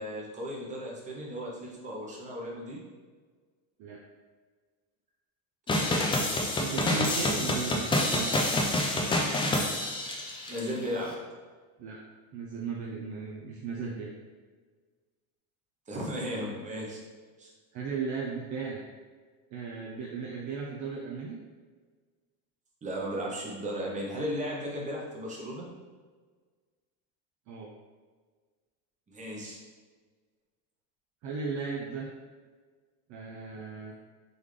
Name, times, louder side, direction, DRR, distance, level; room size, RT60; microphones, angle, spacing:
voice 1, 0.0-2.8 5.7-6.1 10.5-11.3 15.9-17.0 17.4-17.5 22.8-25.7 29.1-29.6, equal, 15° right, -3 dB, 0.8 m, -36 dB
sound 1, 5.7-10.6, left 1 dB, 15° left, 0.3 m, -27 dB
voice 2, 6.6-8.4 11.8-12.0 12.3-14.1 17.7-18.8 19.5-21.4 27.5-27.7 31.2-32.1 33.1-33.9, right 5 dB, 45° right, -2 dB, 0.5 m, -36 dB
3.9 x 3.4 x 3.2 m, 1.5 s
cardioid pair, 135°, 43 cm